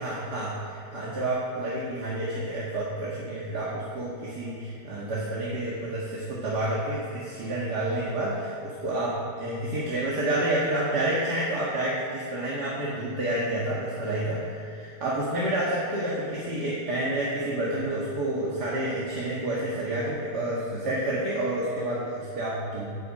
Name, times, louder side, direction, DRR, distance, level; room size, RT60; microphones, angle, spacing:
voice 1, 0.0-22.9, right 1 dB, 80° right, -7 dB, 2.4 m, -29 dB
10.5 x 7.9 x 8.3 m, 2.7 s
omnidirectional pair, 1.7 m